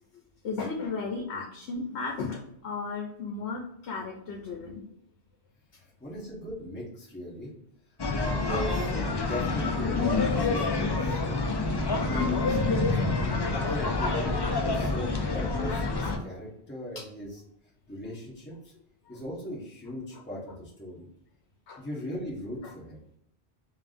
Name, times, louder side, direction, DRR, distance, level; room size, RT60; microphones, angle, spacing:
voice 1, 0.4-4.8 19.1-19.2 21.7-21.8 22.6-22.7, left 4 dB, 80° left, 0 dB, 1.0 m, -35 dB
voice 2, 5.8-7.5 8.1-11.6 12.1-13.0 13.5-17.4 17.9-18.7 19.1-21.1 21.8-23.0, equal, 10° left, -7 dB, 1.1 m, -39 dB
sound 1, 8.0-16.2, left 3 dB, 40° left, 0.3 m, -27 dB
5.6 x 2.6 x 2.5 m, 0.77 s
omnidirectional pair, 1.1 m